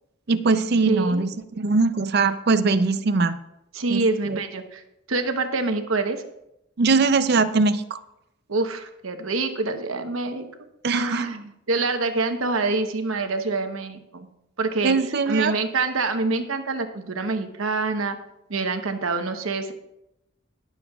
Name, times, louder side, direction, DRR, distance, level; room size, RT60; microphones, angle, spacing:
voice 1, 0.3-3.4 3.9-4.4 6.8-8.0 10.8-11.3 14.8-15.5, right 4 dB, 50° right, 11 dB, 0.5 m, -21 dB
voice 2, 0.9-1.2 3.7-4.8 5.1-6.2 8.5-10.5 10.9-14.3 14.6-15.0 15.3-18.2 18.5-19.7, right 3 dB, 85° right, 7 dB, 1.0 m, -26 dB
21.0 x 7.1 x 2.4 m, 0.84 s
head